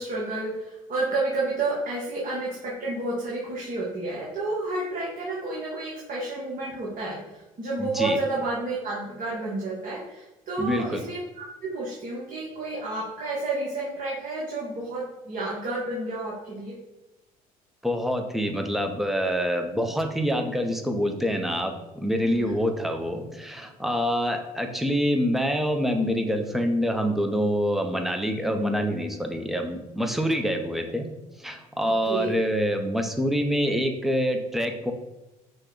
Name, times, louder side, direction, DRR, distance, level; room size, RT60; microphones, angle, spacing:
voice 1, 0.0-16.7 22.3-22.6 28.4-28.7 31.8-32.3, right 2 dB, 45° right, -5 dB, 1.2 m, -30 dB
voice 2, 7.8-8.2 10.6-11.0 17.8-31.1 31.4-34.9, equal, ahead, 5 dB, 0.6 m, -26 dB
5.4 x 2.2 x 3.8 m, 0.99 s
hypercardioid pair, 60°, 19 cm